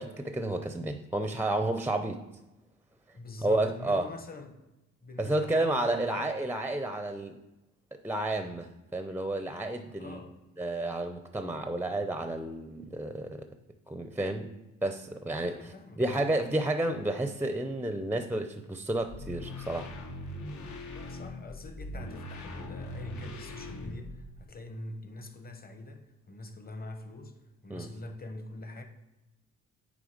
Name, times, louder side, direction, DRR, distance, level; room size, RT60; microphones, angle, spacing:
voice 1, 0.0-2.2 3.4-4.1 5.2-7.4 7.9-10.2 10.6-13.5 13.9-14.5 14.8-19.9 27.7-27.9, right 1 dB, 5° right, 0.6 m, -31 dB
voice 2, 3.1-4.6 5.0-6.3 10.0-10.4 15.3-16.4 20.8-27.4 27.6-28.8, left 2 dB, 30° left, 1.3 m, -44 dB
sound 1, 19.1-24.4, left 1 dB, 70° left, 1.5 m, -41 dB
9.2 x 3.3 x 5.1 m
cardioid pair, 90°, 30 cm